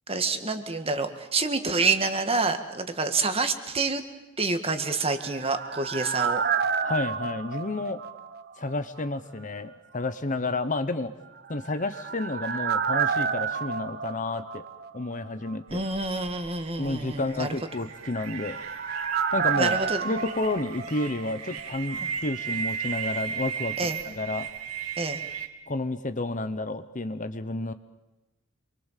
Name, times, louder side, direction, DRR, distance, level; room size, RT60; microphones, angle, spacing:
voice 1, 0.1-4.0 4.4-6.4 15.7-17.6 19.6-20.0 23.8-24.0 25.0-25.2, right 3 dB, 25° right, 8 dB, 1.9 m, -27 dB
sound 1, 4.9-8.7 9.0-9.1 11.5-15.2 15.5-15.6 17.8-21.7 21.9-22.0, right 6 dB, 45° right, 1.0 m, -30 dB
voice 2, 6.8-8.0 8.6-11.1 11.5-14.7 14.9-15.8 16.8-18.6 19.3-19.8 20.0-23.8 24.0-24.5 25.7-27.7, left 2 dB, 35° left, 11 dB, 1.0 m, -30 dB
sound 2, 15.7-25.5, right 7 dB, 85° right, 2.2 m, -36 dB
28.0 x 23.5 x 7.5 m, 1.0 s
head